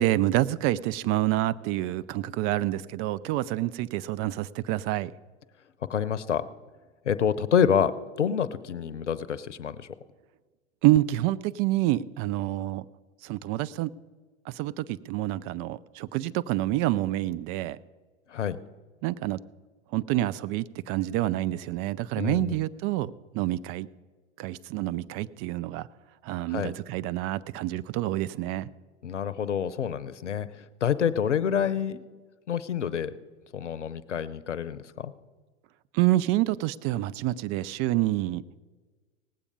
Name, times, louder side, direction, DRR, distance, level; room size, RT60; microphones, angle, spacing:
voice 1, 0.0-5.1 10.8-12.9 13.2-13.9 14.5-17.8 19.0-19.4 19.9-23.9 24.4-25.9 26.2-28.7 35.9-38.4, right 15 dB, 40° right, 16 dB, 0.5 m, -27 dB
voice 2, 5.9-6.5 7.0-7.9 8.2-9.9 18.3-18.6 22.1-22.6 26.5-26.7 29.0-32.0 32.5-33.1 33.5-35.1, left 8 dB, 85° left, 15 dB, 0.7 m, -27 dB
18.5 x 8.4 x 5.3 m, 1.4 s
hypercardioid pair, 90°, 35 cm